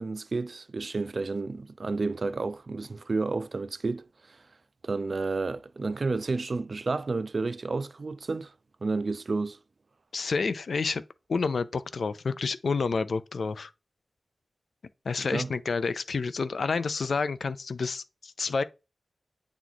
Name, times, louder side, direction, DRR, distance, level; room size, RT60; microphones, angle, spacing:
voice 1, 0.0-4.4 4.8-8.5 8.8-9.6 15.3-15.5, right 3 dB, 50° right, 0.3 m, -31 dB
voice 2, 10.1-11.0 11.3-13.7 15.1-18.6, left 4 dB, 70° left, 0.4 m, -29 dB
8.3 x 3.0 x 4.0 m
wide cardioid pair, 105°, 0 cm